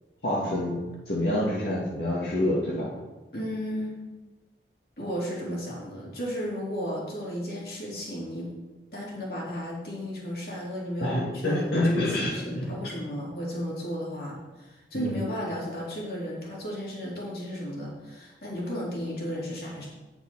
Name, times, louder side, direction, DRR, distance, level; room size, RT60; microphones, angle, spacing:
voice 1, 0.2-2.9 11.0-12.7 14.9-15.2, left 1 dB, 75° left, -6 dB, 1.9 m, -27 dB
voice 2, 3.3-4.0 5.0-8.5 8.9-19.9, equal, 55° left, -4 dB, 3.0 m, -34 dB
9.5 x 5.9 x 5.4 m, 1.2 s
head